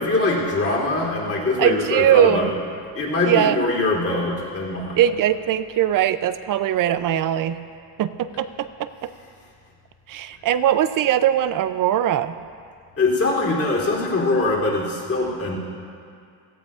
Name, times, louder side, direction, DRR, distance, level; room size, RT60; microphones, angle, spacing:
voice 1, 0.0-2.5 2.9-5.0 13.0-15.6, left 2 dB, 30° left, -5 dB, 3.2 m, -22 dB
voice 2, 1.6-2.5 3.2-3.6 5.0-7.6 8.0-8.9 10.1-12.4, right 11 dB, 50° right, 13 dB, 0.5 m, -20 dB
17.0 x 15.0 x 2.5 m, 2.3 s
cardioid pair, 120°, 44 cm